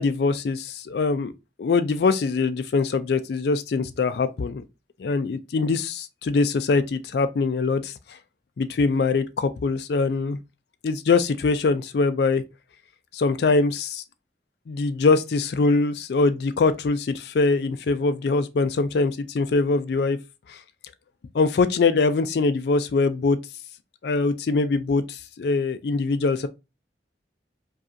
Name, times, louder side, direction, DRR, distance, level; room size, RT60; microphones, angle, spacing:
voice 1, 0.0-1.3 1.6-4.6 5.0-7.9 8.6-10.4 10.8-12.4 13.1-14.0 14.7-20.2 20.5-20.6 21.3-23.4 24.0-26.5, left 4 dB, 65° left, 0.4 m, -23 dB
4.9 x 2.3 x 2.6 m
head